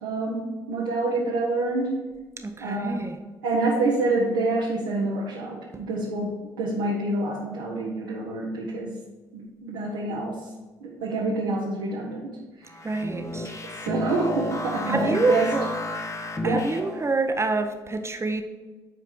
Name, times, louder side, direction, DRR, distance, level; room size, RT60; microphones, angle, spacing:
voice 1, 0.0-2.1 2.6-3.0 3.4-9.0 9.3-10.5 10.8-12.7 13.8-15.5 16.4-16.7, right 2 dB, 75° right, -5 dB, 1.2 m, -27 dB
voice 2, 2.4-3.2 5.7-5.8 12.8-13.5 14.9-15.7 16.4-18.4, right 3 dB, 25° right, 6 dB, 1.0 m, -26 dB
sound 1, 12.7-17.2, left 1 dB, 25° left, 1.2 m, -32 dB
9.3 x 4.8 x 4.5 m, 1.2 s
figure-of-eight pair, 45°, 11 cm